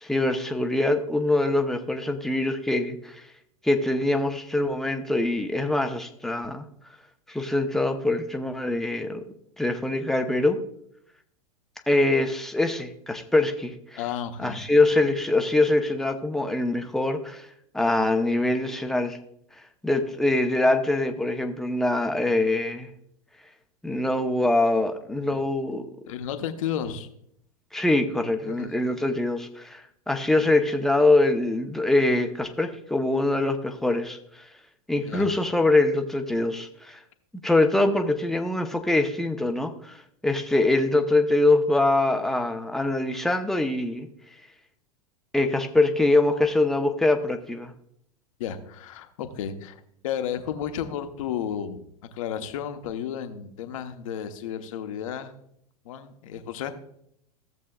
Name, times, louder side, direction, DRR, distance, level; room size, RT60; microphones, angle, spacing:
voice 1, 0.0-3.2 3.6-6.6 7.3-9.2 9.6-10.6 11.9-14.0 14.4-17.5 17.7-19.2 19.8-22.9 23.8-25.8 27.7-34.2 34.9-37.0 37.4-44.1 45.3-47.7, left 2 dB, ahead, 5 dB, 0.8 m, -23 dB
voice 2, 14.0-14.7 25.3-25.4 26.1-27.1 28.4-28.7 30.4-30.5 34.9-35.3 48.4-51.8 52.1-55.3 55.8-56.7, left 9 dB, 60° left, 7 dB, 1.0 m, -33 dB
15.0 x 7.3 x 2.3 m, 0.70 s
figure-of-eight pair, 95°, 19 cm